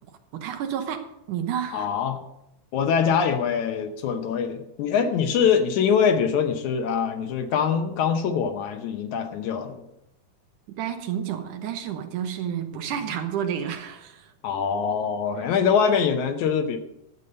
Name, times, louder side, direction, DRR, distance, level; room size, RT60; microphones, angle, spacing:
voice 1, 0.3-1.9 10.8-14.3, right 9 dB, 75° right, 7 dB, 2.5 m, -30 dB
voice 2, 1.7-2.2 2.7-9.8 12.7-12.9 14.4-16.8, left 7 dB, 70° left, 7 dB, 2.3 m, -23 dB
12.5 x 8.3 x 5.3 m, 0.85 s
omnidirectional pair, 3.7 m